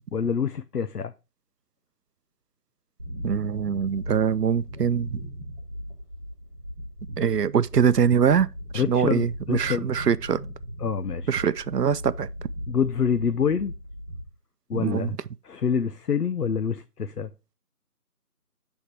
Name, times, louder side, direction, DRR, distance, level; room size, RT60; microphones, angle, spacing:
voice 1, 0.1-1.1 8.7-9.9 10.8-11.3 12.7-13.7 14.7-15.2 15.5-17.3, left 6 dB, 70° left, 0.6 m, -26 dB
sound 1, 3.0-14.2, equal, 5° right, 2.8 m, -38 dB
voice 2, 3.2-5.2 7.2-8.5 8.7-10.4 11.3-12.3 14.7-15.2, right 7 dB, 80° right, 0.6 m, -23 dB
9.7 x 3.6 x 4.6 m
figure-of-eight pair, 170°, 47 cm